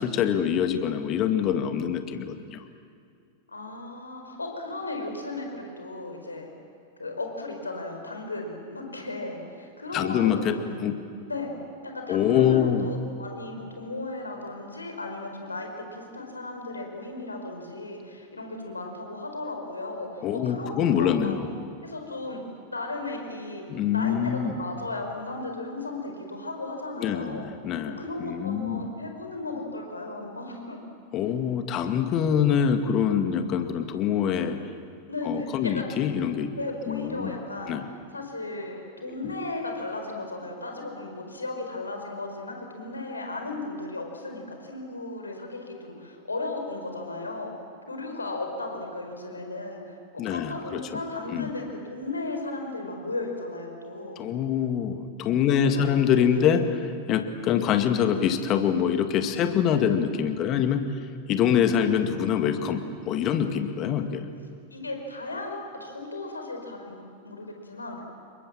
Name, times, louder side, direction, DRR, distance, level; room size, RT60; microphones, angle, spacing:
voice 1, 0.0-2.6 9.9-11.0 12.1-12.9 20.2-21.5 23.7-24.6 27.0-28.8 31.1-34.6 35.2-36.5 36.9-37.4 37.7-37.9 39.1-39.3 50.2-50.9 51.3-51.5 54.2-56.6 57.1-60.8 61.3-64.3, left 8 dB, 35° left, 7 dB, 2.1 m, -25 dB
voice 2, 3.5-6.5 7.0-10.8 11.3-11.5 11.8-21.3 21.8-22.4 22.7-27.5 28.0-30.8 31.2-31.4 35.1-35.8 36.6-37.7 38.1-47.5 47.9-49.8 50.1-54.2 55.5-56.4 64.7-68.0, left 2 dB, 80° left, 3 dB, 4.7 m, -35 dB
28.0 x 23.0 x 7.6 m, 2.3 s
figure-of-eight pair, 90°, 0 cm